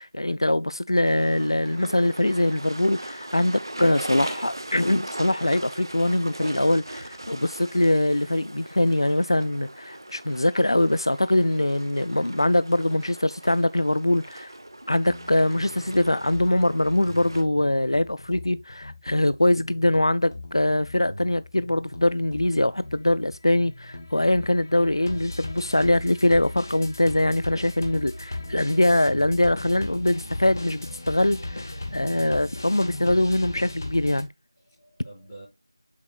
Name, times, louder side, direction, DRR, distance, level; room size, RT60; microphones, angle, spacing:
voice 1, 0.0-14.5 14.9-34.3, left 1 dB, 70° left, 0.3 m, -23 dB
sound 1, 1.0-17.4, right 1 dB, 55° right, 1.1 m, -39 dB
sound 2, 15.1-34.2, left 2 dB, 40° left, 1.4 m, -38 dB
voice 2, 34.5-35.4, right 1 dB, 15° left, 3.8 m, -48 dB
7.2 x 6.0 x 2.3 m
figure-of-eight pair, 170°, 3 cm